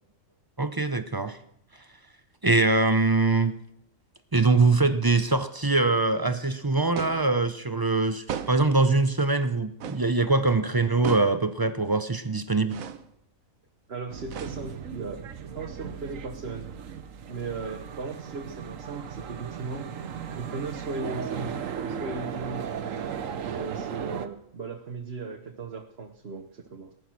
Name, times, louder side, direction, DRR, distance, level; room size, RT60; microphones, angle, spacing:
voice 1, 0.6-1.4 2.4-3.5 4.3-12.8, right 3 dB, 25° right, 11 dB, 0.5 m, -23 dB
sound 1, 7.0-7.3 8.3-8.8 9.8-10.1 11.0-11.5 12.7-13.1 14.3-14.9, right 8 dB, 90° right, 1.2 m, -36 dB
voice 2, 13.9-15.2 15.5-16.7 17.3-19.9 20.3-22.7 23.4-26.9, right 4 dB, 50° right, 2 dB, 1.3 m, -37 dB
sound 2, 14.1-24.3, right 7 dB, 75° right, 1.3 m, -36 dB
19.0 x 11.0 x 6.1 m, 0.74 s
omnidirectional pair, 1.4 m